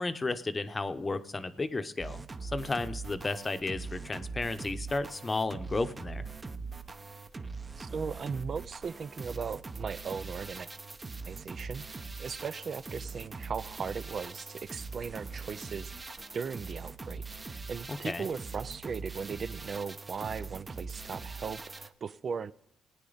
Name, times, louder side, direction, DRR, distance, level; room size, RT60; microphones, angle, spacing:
voice 1, 0.0-6.3 17.9-18.3, left 3 dB, 25° left, 10 dB, 0.8 m, -33 dB
sound 1, 2.0-21.9, right 4 dB, 25° right, 0.8 m, -42 dB
voice 2, 7.8-10.7 11.3-16.1 16.3-22.5, right 6 dB, 45° right, 15 dB, 0.4 m, -38 dB
18.0 x 9.4 x 4.0 m, 0.78 s
cardioid pair, 90°, 0 cm